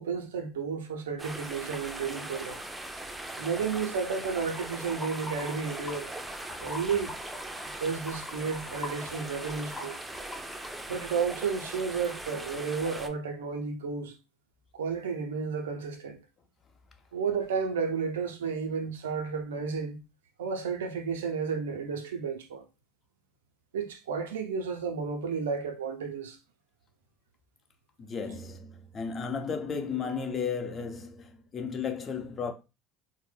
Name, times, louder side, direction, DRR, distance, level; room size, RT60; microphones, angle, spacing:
voice 1, 0.0-2.6 3.4-6.1 6.6-7.1 7.8-10.0 10.9-14.2 14.7-16.2 17.1-20.0 20.4-22.6 23.7-26.4, right 5 dB, 85° right, 0.4 m, -32 dB
sound 1, 1.2-13.1, right 1 dB, 10° right, 0.4 m, -40 dB
sound 2, 4.5-6.0 6.3-10.7, left 2 dB, 20° left, 1.1 m, -43 dB
voice 2, 28.0-32.5, left 6 dB, 35° left, 0.7 m, -34 dB
2.1 x 2.1 x 3.2 m
hypercardioid pair, 75°, 0 cm